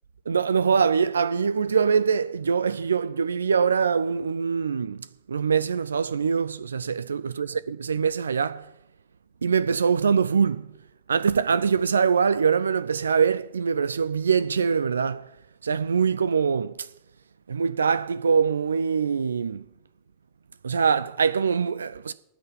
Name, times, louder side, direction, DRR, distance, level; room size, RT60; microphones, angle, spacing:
voice 1, 0.3-8.7 9.4-10.7 11.1-15.3 15.6-16.9 17.5-19.7 20.6-22.1, right 6 dB, 70° right, 0.4 m, -23 dB
9.7 x 7.9 x 8.4 m
figure-of-eight pair, 90°, 0 cm